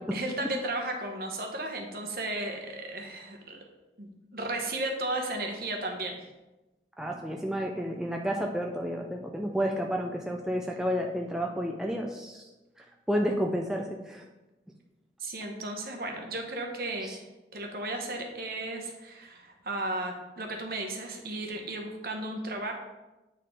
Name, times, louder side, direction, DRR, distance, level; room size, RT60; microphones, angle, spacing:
voice 1, 0.1-3.6 4.0-6.2 15.2-17.2 17.5-22.7, right 2 dB, 55° right, 2 dB, 0.9 m, -34 dB
voice 2, 7.0-12.4 12.8-14.2 17.0-17.2, equal, 5° right, 0 dB, 0.4 m, -31 dB
8.7 x 3.8 x 3.3 m, 1.0 s
head